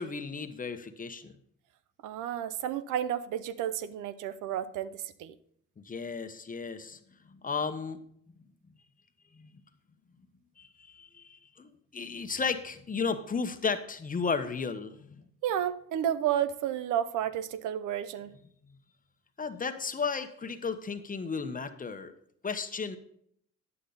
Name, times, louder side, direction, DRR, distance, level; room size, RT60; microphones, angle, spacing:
voice 1, 0.0-1.3 5.8-7.0 7.3-8.0 8.3-8.4 9.3-9.5 10.6-15.2 19.4-22.1 22.4-23.0, left 5 dB, 30° left, 8 dB, 1.0 m, -34 dB
voice 2, 2.0-5.3 15.4-18.3, right 10 dB, 90° right, 15 dB, 0.6 m, -31 dB
9.8 x 8.4 x 4.0 m, 0.67 s
cardioid pair, 90°, 30 cm